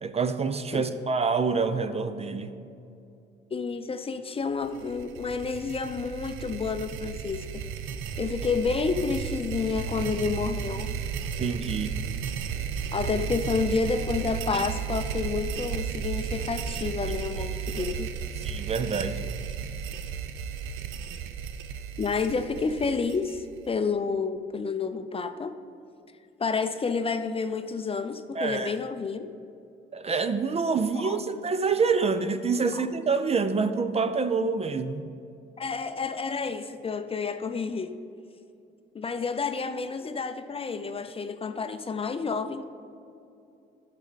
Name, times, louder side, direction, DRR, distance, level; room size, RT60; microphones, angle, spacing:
voice 1, 0.0-2.5 11.4-12.0 17.4-17.5 17.8-17.9 18.4-19.2 28.3-28.8 29.9-35.1, right 4 dB, 30° right, 10 dB, 0.5 m, -27 dB
voice 2, 3.5-7.4 8.2-10.9 12.9-18.1 22.0-25.5 26.4-29.3 30.9-31.2 32.7-32.8 35.6-37.9 38.9-42.6, left 4 dB, 30° left, 9 dB, 0.5 m, -30 dB
sound 1, 4.6-23.7, right 7 dB, 85° right, 0.5 m, -34 dB
11.5 x 6.5 x 4.0 m, 2.7 s
cardioid pair, 90°, 20 cm